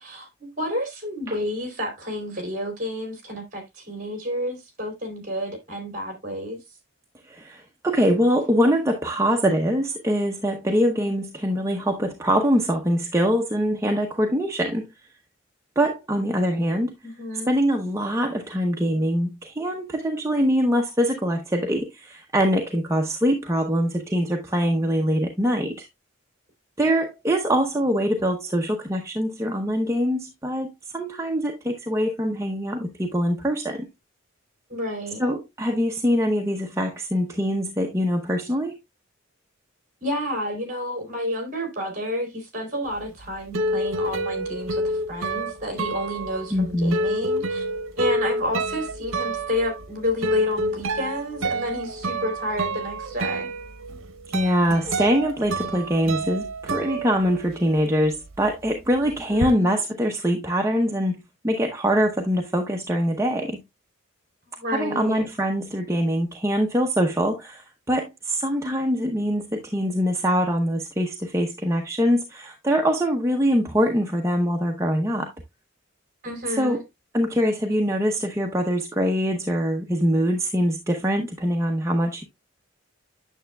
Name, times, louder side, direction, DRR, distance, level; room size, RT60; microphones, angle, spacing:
voice 1, 0.0-6.6 17.0-17.5 34.7-35.2 40.0-44.8 45.1-47.6 48.0-53.5 59.0-59.7 64.5-65.3 76.2-76.8, equal, 40° right, 3.0 m, -30 dB
voice 2, 7.3-14.9 15.8-16.9 17.5-25.9 26.8-33.9 35.2-38.8 46.5-47.0 54.3-63.6 64.7-75.3 76.5-76.8 77.1-82.2, equal, 15° right, 0.7 m, -23 dB
sound 1, 43.0-57.8 58.1-59.5, right 1 dB, 80° right, 0.8 m, -29 dB
9.0 x 6.9 x 2.2 m
head